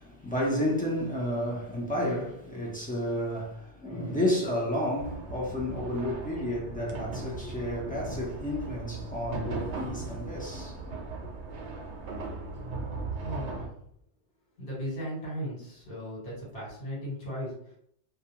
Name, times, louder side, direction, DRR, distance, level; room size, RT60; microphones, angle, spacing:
voice 1, 0.0-11.0, left 1 dB, 15° left, 0.3 m, -31 dB
sound 1, 5.0-13.7, right 3 dB, 80° right, 0.9 m, -38 dB
voice 2, 13.2-13.7 14.6-17.8, equal, 70° left, 1.3 m, -37 dB
2.3 x 2.2 x 2.8 m
omnidirectional pair, 1.2 m